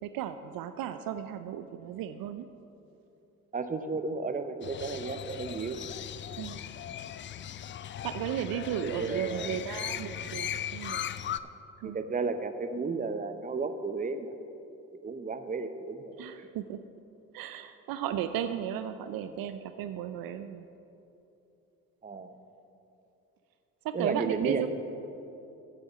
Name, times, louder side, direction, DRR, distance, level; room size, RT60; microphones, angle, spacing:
voice 1, 0.0-2.5 6.4-6.6 8.0-11.1 11.8-12.0 16.2-16.8 17.3-20.7 23.8-24.7, right 10 dB, 60° right, 10 dB, 0.5 m, -35 dB
voice 2, 3.5-5.8 8.8-9.6 11.8-14.3 15.0-16.1 22.0-22.3 23.9-24.7, right 4 dB, 20° right, 9 dB, 0.7 m, -33 dB
Crow, 4.6-11.4, left 10 dB, 30° left, 0.4 m, -38 dB
8.8 x 7.9 x 6.1 m, 2.9 s
hypercardioid pair, 50°, 41 cm